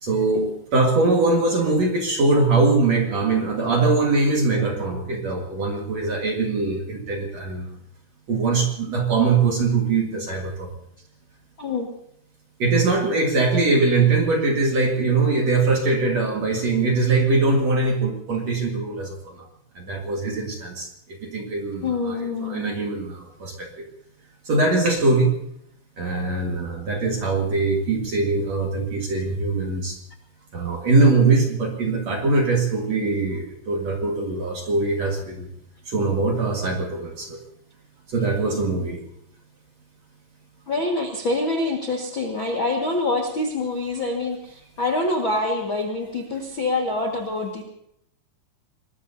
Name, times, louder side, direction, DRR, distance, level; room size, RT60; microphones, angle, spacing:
voice 1, 0.0-7.7 8.3-10.7 12.6-19.5 19.8-20.9 21.2-23.8 24.5-25.4 26.0-30.0 30.5-35.5 35.9-37.4 38.1-39.0, right 3 dB, 50° right, 0 dB, 2.1 m, -22 dB
voice 2, 11.6-11.9 21.8-22.6 40.7-47.6, left 2 dB, 85° left, 1 dB, 1.1 m, -25 dB
26.0 x 20.5 x 2.8 m, 0.73 s
omnidirectional pair, 5.5 m